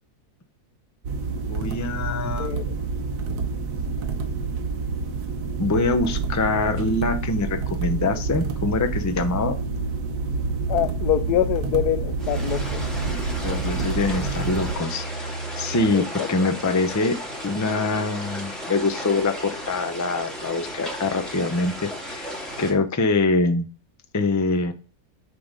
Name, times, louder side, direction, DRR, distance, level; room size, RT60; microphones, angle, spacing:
sound 1, 1.0-14.7, right 4 dB, 80° right, 1.5 m, -28 dB
voice 1, 1.5-2.6 5.6-9.6 13.4-15.3 15.6-17.2 17.4-21.7 22.0-22.3 22.6-23.6 24.1-24.7, left 3 dB, 20° left, 0.4 m, -24 dB
voice 2, 2.4-2.7 10.7-12.8 15.9-16.5, left 12 dB, 85° left, 1.2 m, -25 dB
sound 2, 9.3-16.0, right 3 dB, 35° right, 1.7 m, -33 dB
sound 3, 12.2-22.7, equal, ahead, 2.0 m, -35 dB
9.3 x 3.8 x 6.6 m
omnidirectional pair, 1.6 m